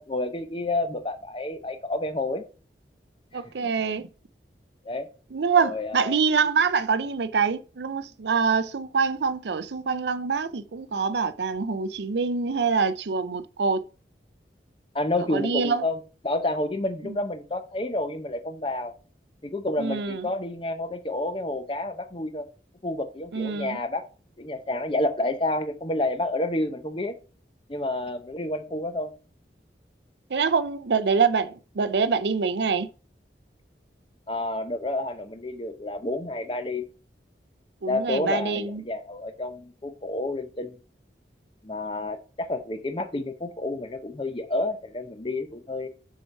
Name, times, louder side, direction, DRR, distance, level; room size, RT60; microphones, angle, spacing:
voice 1, 0.0-2.4 3.6-3.7 4.8-5.1 5.6-6.2 14.9-16.0 16.2-18.9 19.4-22.5 22.8-24.1 24.4-27.1 27.7-29.1 34.3-36.9 37.9-40.8 41.6-45.9, left 2 dB, 30° left, 0.8 m, -29 dB
voice 2, 3.3-4.1 5.3-13.8 15.3-15.9 17.0-17.2 19.8-20.3 23.3-23.8 30.3-32.9 37.8-38.8, right 5 dB, 75° right, 0.5 m, -25 dB
6.3 x 4.6 x 5.5 m
head